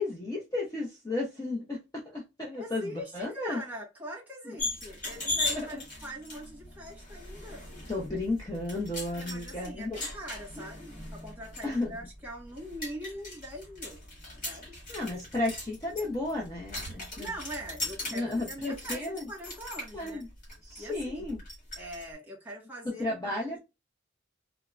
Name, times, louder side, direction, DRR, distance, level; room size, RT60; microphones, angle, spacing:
voice 1, 0.0-3.6 4.4-4.5 5.5-5.8 7.9-9.9 10.6-10.7 11.6-11.9 14.9-17.3 18.1-19.3 19.9-20.3 20.6-21.4 23.0-23.6, left 2 dB, 20° left, 0.6 m, -33 dB
voice 2, 2.5-7.7 9.1-14.0 14.4-14.7 17.2-20.2 20.8-21.3 21.7-23.6, right 1 dB, 10° right, 1.3 m, -42 dB
sound 1, 4.6-22.0, left 2 dB, 45° left, 1.7 m, -39 dB
3.4 x 2.0 x 2.3 m
head